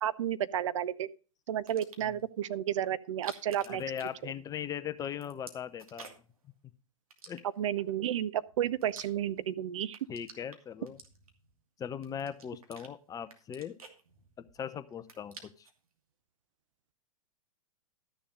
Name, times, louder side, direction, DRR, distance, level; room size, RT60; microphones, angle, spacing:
voice 1, 0.0-1.1 1.5-3.8 4.2-4.3 7.6-10.0, right 10 dB, 60° right, 0.7 m, -32 dB
sound 1, 1.5-2.2 3.0-4.7 5.0-6.4 7.1-7.9 8.4-9.5 9.8-11.5 12.0-12.9 13.3-14.6 14.9-15.8, right 4 dB, 80° right, 2.6 m, -51 dB
voice 2, 3.7-6.1 7.3-7.4 10.1-11.0 11.8-13.8 14.6-15.7, left 8 dB, 20° left, 0.8 m, -39 dB
13.0 x 7.0 x 5.2 m
figure-of-eight pair, 110°, 18 cm